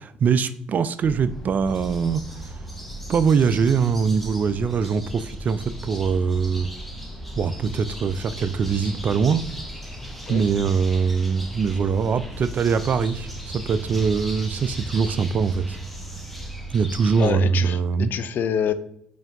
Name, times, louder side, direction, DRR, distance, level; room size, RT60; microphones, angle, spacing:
voice 1, 0.2-2.6 3.1-6.7 7.4-9.4 10.3-15.8 16.7-18.1, right 6 dB, 45° right, 0.3 m, -22 dB
sound 1, 1.0-17.3, right 1 dB, 5° left, 0.8 m, -36 dB
voice 2, 17.2-18.7, left 8 dB, 55° left, 0.4 m, -26 dB
4.4 x 2.7 x 3.4 m
hypercardioid pair, 60°, 4 cm